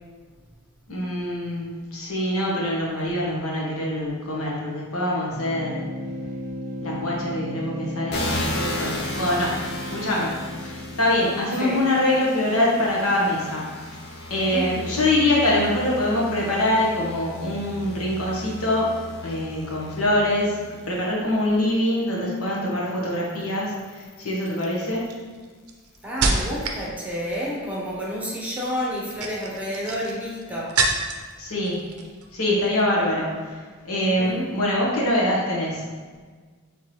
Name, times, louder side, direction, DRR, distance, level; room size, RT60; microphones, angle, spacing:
voice 1, 0.9-5.8 6.8-9.6 9.9-13.7 14.3-18.9 19.2-20.6 20.9-25.1 31.4-31.8 32.3-33.6 33.8-35.9, left 1 dB, 75° left, -4 dB, 1.2 m, -24 dB
sound 1, 5.3-12.0, equal, 10° left, 1.3 m, -35 dB
sound 2, 8.1-21.5 22.2-25.1, left 2 dB, 50° left, 0.6 m, -35 dB
voice 2, 14.5-15.0 26.0-30.7 34.0-34.5, equal, 5° right, -5 dB, 0.8 m, -30 dB
sound 3, 23.4-23.7 24.5-26.9 27.1-27.7 28.9-31.3 31.6-32.3 32.6-32.8, right 3 dB, 85° right, 0.6 m, -28 dB
4.5 x 3.8 x 3.1 m, 1.5 s
head